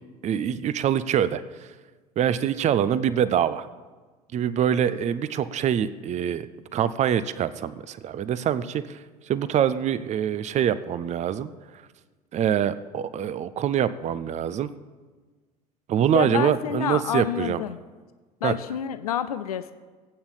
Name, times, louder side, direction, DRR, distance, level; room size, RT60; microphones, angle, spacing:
voice 1, 0.2-1.4 2.2-3.7 4.3-11.5 12.3-14.7 15.9-17.6 18.4-18.5, right 9 dB, 35° right, 15 dB, 0.7 m, -25 dB
voice 2, 16.1-17.8 18.4-19.7, left 10 dB, 75° left, 12 dB, 0.6 m, -28 dB
17.0 x 8.8 x 7.5 m, 1.3 s
figure-of-eight pair, 60°, 19 cm